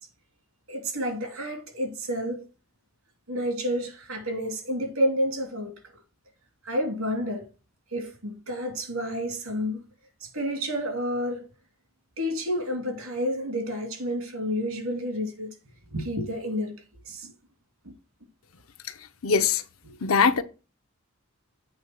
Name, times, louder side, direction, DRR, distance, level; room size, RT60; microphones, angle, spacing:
voice 1, 0.7-2.4 3.3-5.8 6.6-7.5 7.9-9.8 10.2-11.5 12.2-15.5 15.9-17.3, equal, 90° right, 3.0 m, -30 dB
voice 2, 19.2-19.6 20.0-20.4, left 5 dB, 85° left, 0.7 m, -21 dB
8.0 x 3.9 x 6.1 m
head